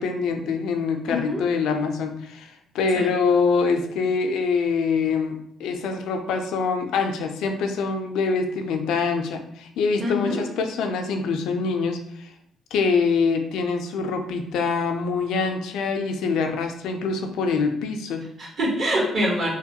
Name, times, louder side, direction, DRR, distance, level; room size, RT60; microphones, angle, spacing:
voice 1, 0.0-12.3 12.7-18.3, left 4 dB, 85° left, 5 dB, 0.3 m, -25 dB
voice 2, 1.1-1.4 2.9-3.1 10.0-10.4 18.4-19.5, equal, 55° right, -3 dB, 1.0 m, -25 dB
2.8 x 2.1 x 2.7 m, 0.70 s
cardioid pair, 90°, 0 cm